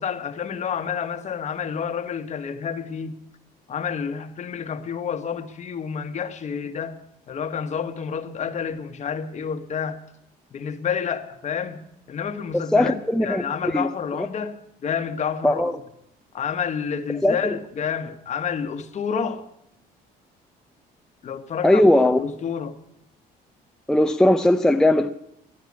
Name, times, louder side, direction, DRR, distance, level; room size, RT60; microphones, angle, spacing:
voice 1, 0.0-3.2 3.7-7.0 7.3-10.0 10.5-11.8 12.1-15.6 16.3-19.5 21.2-21.9 22.2-22.8, left 7 dB, 45° left, 1.2 m, -29 dB
voice 2, 12.5-14.3 15.4-15.7 17.2-17.4 21.6-22.2 23.9-25.1, left 1 dB, 5° left, 0.5 m, -19 dB
11.0 x 11.0 x 8.4 m
cardioid pair, 110°, 17 cm